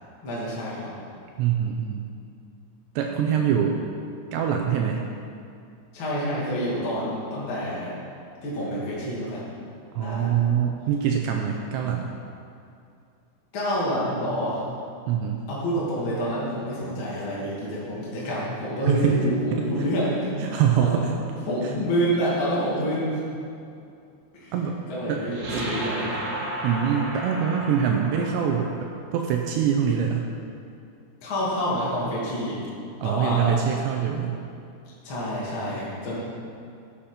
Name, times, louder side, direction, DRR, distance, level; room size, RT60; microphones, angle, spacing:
voice 1, 0.2-0.9 5.9-7.9 8.4-9.4 10.0-10.3 13.5-14.6 15.5-21.1 21.5-23.2 24.3-24.5 24.9-26.2 31.2-32.6 33.0-33.5 35.0-36.2, equal, 35° left, -8 dB, 2.5 m, -28 dB
voice 2, 1.4-2.0 3.0-3.8 4.3-5.1 9.9-12.1 15.1-15.4 18.9-19.1 19.5-19.6 20.4-21.1 21.6-21.7 24.5-24.8 25.1-25.7 26.6-28.7 29.1-30.3 33.0-34.4, right 8 dB, 85° right, 2 dB, 2.6 m, -24 dB
sound 1, 20.5-22.4 25.3-28.7, right 1 dB, 65° right, 4.3 m, -35 dB
12.5 x 8.7 x 5.2 m, 2.5 s
omnidirectional pair, 5.7 m